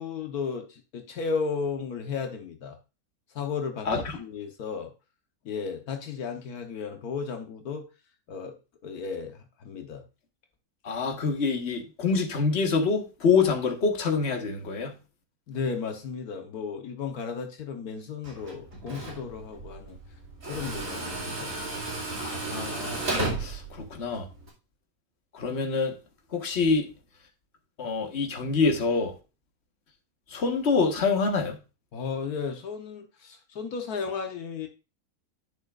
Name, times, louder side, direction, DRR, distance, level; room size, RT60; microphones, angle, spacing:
voice 1, 0.0-2.8 3.3-4.9 5.4-7.9 8.3-8.5 8.8-10.0 15.5-20.0 20.5-21.5 31.9-34.7, left 5 dB, 80° left, 1.5 m, -34 dB
voice 2, 10.9-14.9 22.2-23.1 23.4-24.3 25.3-25.9 26.3-26.9 27.8-29.1 30.3-31.6, left 4 dB, 45° left, 1.7 m, -26 dB
Tools, 18.2-24.5, right 2 dB, 60° right, 2.7 m, -34 dB
11.0 x 6.5 x 2.4 m
omnidirectional pair, 1.6 m